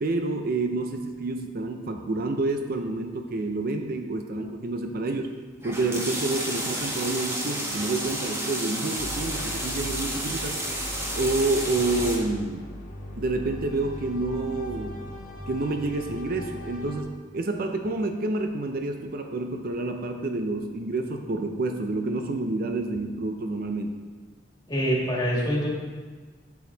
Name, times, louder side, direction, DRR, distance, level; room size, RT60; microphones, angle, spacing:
voice 1, 0.0-5.3 5.6-10.6 11.2-12.7 13.2-15.0 15.5-24.0, right 2 dB, 55° right, 5 dB, 0.5 m, -28 dB
sound 1, 5.6-12.2, right 1 dB, 15° right, 1.1 m, -31 dB
sound 2, 9.0-17.0, left 1 dB, 45° left, 1.2 m, -39 dB
voice 2, 24.7-25.7, equal, 20° left, -5 dB, 2.0 m, -25 dB
8.5 x 6.9 x 3.9 m, 1.4 s
head